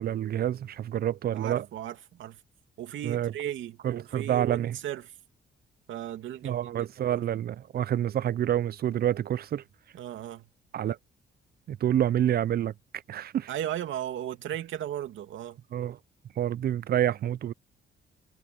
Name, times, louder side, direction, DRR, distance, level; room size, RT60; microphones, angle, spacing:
voice 1, 0.0-1.7 3.0-3.3 3.8-4.8 6.4-9.6 10.7-11.0 11.7-12.7 13.1-13.5 15.7-16.0 16.4-17.5, right 11 dB, 50° right, 0.5 m, -28 dB
voice 2, 1.3-2.4 2.8-5.1 5.9-7.2 9.9-10.5 13.5-15.6, right 11 dB, 75° right, 2.7 m, -36 dB
cardioid pair, 90°, 20 cm